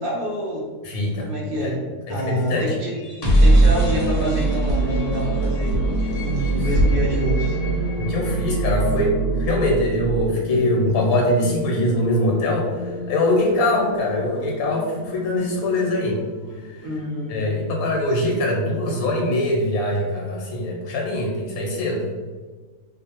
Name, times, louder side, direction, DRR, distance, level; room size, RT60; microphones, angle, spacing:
voice 1, 0.0-0.7 1.2-2.9 3.4-5.8 6.2-7.5 16.8-17.5, left 1 dB, 45° right, -5 dB, 0.8 m, -27 dB
voice 2, 0.8-1.3 1.6-1.7 2.1-2.8 6.3-6.6 8.0-16.2 16.7-16.8 17.3-22.0, left 1 dB, 80° left, -1 dB, 1.2 m, -23 dB
sound 1, 2.9-16.8, right 2 dB, 60° left, 1.0 m, -23 dB
2.5 x 2.3 x 2.8 m, 1.4 s
omnidirectional pair, 1.5 m